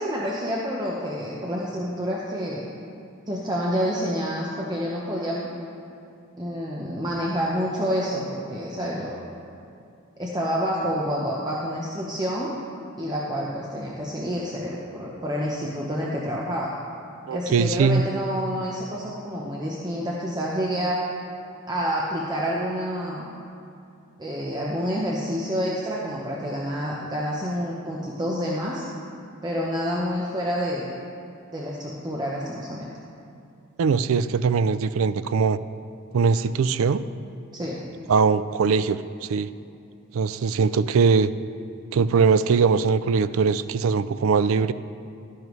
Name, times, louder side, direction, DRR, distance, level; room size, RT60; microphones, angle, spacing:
voice 1, 0.0-2.6 3.3-5.5 6.4-9.2 10.2-12.5 13.0-16.7 17.3-21.0 21.7-23.3 24.2-28.8 29.4-30.9 31.5-32.9 37.5-37.8, equal, 20° right, -4 dB, 0.8 m, -28 dB
voice 2, 17.3-18.0 33.8-35.6 36.1-37.0 38.1-39.5 40.1-41.3 41.9-44.7, right 5 dB, 75° right, 14 dB, 0.4 m, -21 dB
12.5 x 10.0 x 3.2 m, 2.6 s
head